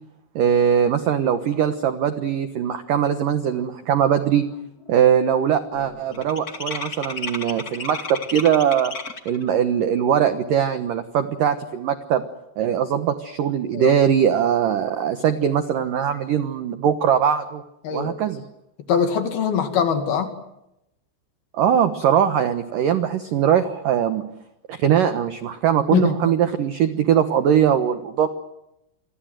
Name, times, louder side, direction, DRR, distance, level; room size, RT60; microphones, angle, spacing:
voice 1, 0.4-4.4 4.9-8.9 9.3-12.2 12.6-17.6 17.9-18.4 21.5-24.2 24.7-28.3, right 9 dB, 85° right, 9 dB, 1.9 m, -21 dB
sound 1, 3.7-3.8 4.2-4.5 4.8-9.4, left 4 dB, 85° left, 0.8 m, -34 dB
voice 2, 18.9-20.3 25.9-26.3, left 7 dB, 55° left, 7 dB, 3.6 m, -22 dB
28.5 x 23.5 x 7.8 m, 0.85 s
omnidirectional pair, 5.9 m